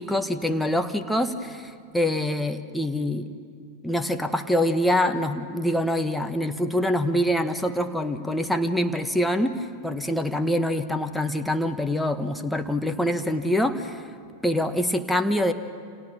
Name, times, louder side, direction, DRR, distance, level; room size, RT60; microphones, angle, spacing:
voice 1, 0.0-3.3 3.8-14.0 14.4-15.5, left 1 dB, 5° left, 7 dB, 1.3 m, -25 dB
29.5 x 27.0 x 7.1 m, 2.2 s
figure-of-eight pair, 90°, 0 cm